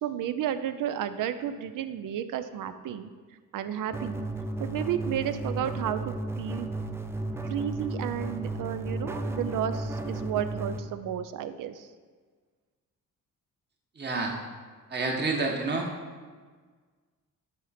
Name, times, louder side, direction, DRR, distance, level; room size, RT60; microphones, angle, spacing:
voice 1, 0.0-3.1 3.5-4.3 4.6-6.7 7.4-11.9, right 10 dB, 80° right, 11 dB, 0.5 m, -32 dB
sound 1, 3.9-10.8, right 2 dB, 10° right, 0.3 m, -34 dB
voice 2, 14.0-14.3 14.9-15.9, right 3 dB, 35° right, 0 dB, 1.1 m, -28 dB
9.9 x 4.4 x 4.2 m, 1.5 s
wide cardioid pair, 150°, 32 cm